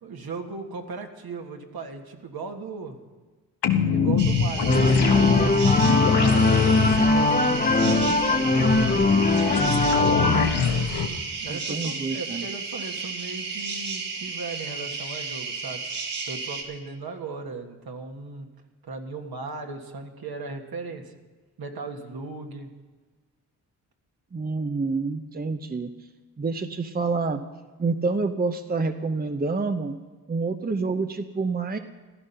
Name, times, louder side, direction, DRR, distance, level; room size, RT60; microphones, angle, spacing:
voice 1, 0.0-3.0 3.9-9.1 11.4-16.0 16.3-18.5 18.8-21.1 21.6-22.7, right 4 dB, 60° right, 3 dB, 1.8 m, -37 dB
sound 1, 3.6-11.1, left 7 dB, 70° left, 1.2 m, -24 dB
sound 2, 4.2-16.6, right 4 dB, 75° right, 2.4 m, -33 dB
sound 3, 4.7-10.5, left 2 dB, 20° left, 1.1 m, -21 dB
voice 2, 10.1-10.5 11.5-12.4 24.3-25.9 26.4-27.4 27.8-29.9 30.3-31.8, right 3 dB, 20° right, 7 dB, 0.8 m, -28 dB
15.0 x 11.0 x 5.6 m, 1.3 s
supercardioid pair, 50°, 42 cm